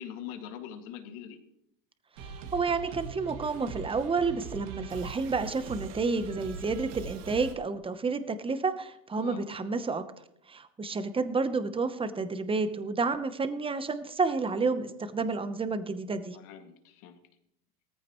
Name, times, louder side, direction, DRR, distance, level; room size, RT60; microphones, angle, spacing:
voice 1, 0.0-1.4 9.2-9.4 16.3-17.2, left 9 dB, 70° left, 5 dB, 2.2 m, -43 dB
voice 2, 2.2-10.0 10.5-16.4, right 4 dB, 10° right, 11 dB, 0.9 m, -30 dB
sound 1, 2.2-7.5, right 6 dB, 80° right, 2.1 m, -42 dB
18.0 x 14.5 x 3.1 m, 0.78 s
supercardioid pair, 125°, 45 cm